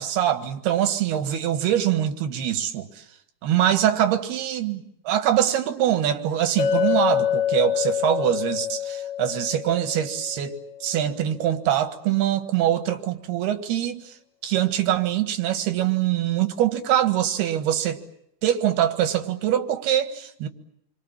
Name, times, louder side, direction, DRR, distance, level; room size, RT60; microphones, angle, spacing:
voice 1, 0.0-2.9 3.4-14.0 14.4-18.0 18.4-20.5, right 11 dB, 90° right, 3.6 m, -23 dB
Chink clink, 6.6-10.8, left 9 dB, 60° left, 5.2 m, -26 dB
28.0 x 25.0 x 7.4 m
omnidirectional pair, 4.4 m